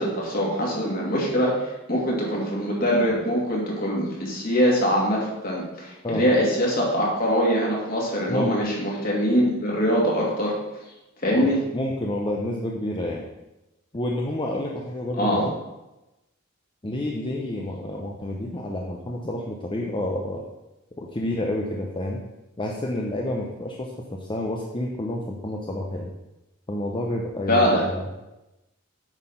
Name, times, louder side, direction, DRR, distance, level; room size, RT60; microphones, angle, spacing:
voice 1, 0.0-5.2 5.4-10.5 11.2-11.6 15.2-15.4 27.5-27.9, equal, 45° left, -3 dB, 2.4 m, -23 dB
voice 2, 11.3-13.3 13.9-15.6 16.8-20.4 21.0-22.2 22.6-26.1 26.7-28.1, left 1 dB, 25° left, -1 dB, 0.7 m, -29 dB
8.9 x 4.4 x 5.6 m, 1.0 s
head